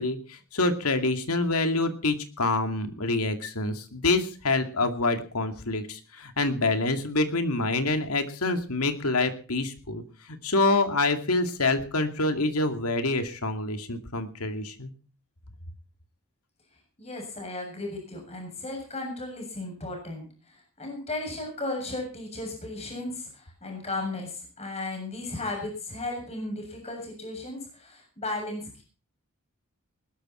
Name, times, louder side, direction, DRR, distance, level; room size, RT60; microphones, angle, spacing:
voice 1, 0.0-10.0 10.3-14.9, left 2 dB, 80° left, 7 dB, 2.3 m, -26 dB
voice 2, 17.0-28.8, left 2 dB, 30° left, 2 dB, 7.2 m, -35 dB
20.0 x 12.5 x 4.4 m, 0.37 s
head